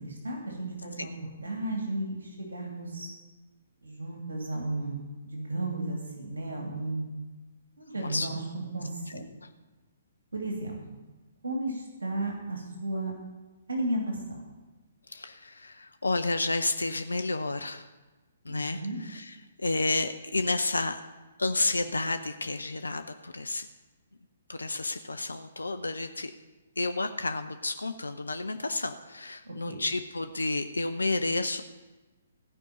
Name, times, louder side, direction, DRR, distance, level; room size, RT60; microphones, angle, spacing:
voice 1, 0.0-3.1 3.8-7.1 7.8-9.2 10.3-10.8 11.4-13.1 13.7-14.4 18.5-19.0 29.4-29.8, right 1 dB, 65° right, 1 dB, 2.6 m, -34 dB
voice 2, 8.0-8.3 9.1-9.5 15.1-17.8 18.4-21.0 21.4-23.7 24.5-26.3 26.8-31.6, left 2 dB, 75° left, 8 dB, 0.6 m, -31 dB
15.5 x 5.4 x 8.7 m, 1.2 s
figure-of-eight pair, 125°, 0 cm